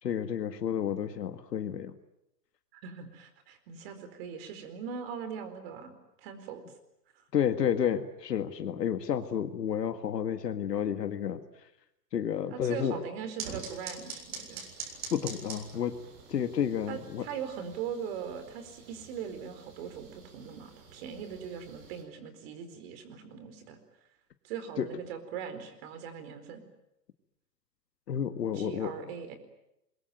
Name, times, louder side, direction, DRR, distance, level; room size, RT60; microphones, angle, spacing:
voice 1, 0.0-1.9 7.3-11.4 12.1-12.9 15.1-16.0 16.3-17.2 24.8-24.9 28.1-28.9, left 8 dB, 85° left, 8 dB, 2.0 m, -30 dB
voice 2, 2.7-6.6 7.1-7.2 12.5-14.7 16.9-23.8 24.4-26.6 28.5-29.4, right 7 dB, 35° right, 10 dB, 4.4 m, -40 dB
sound 1, 13.4-22.0, right 5 dB, 55° right, 7.3 m, -46 dB
26.0 x 22.5 x 9.3 m, 0.85 s
hypercardioid pair, 155°, 48 cm